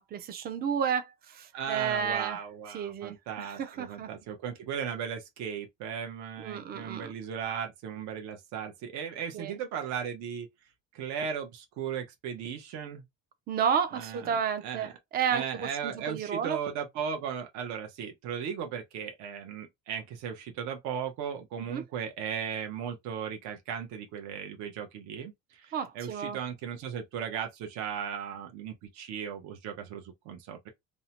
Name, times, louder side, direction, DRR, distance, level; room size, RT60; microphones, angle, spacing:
voice 1, 0.0-2.4 2.7-4.1 6.4-7.1 9.3-9.5 13.5-16.6 21.7-21.8 25.7-26.4, right 7 dB, 30° right, 0.4 m, -31 dB
voice 2, 1.5-10.5 10.9-13.0 13.9-14.9 15.3-30.7, right 7 dB, 65° right, 0.7 m, -37 dB
2.7 x 2.1 x 2.8 m
cardioid pair, 175°, 30 cm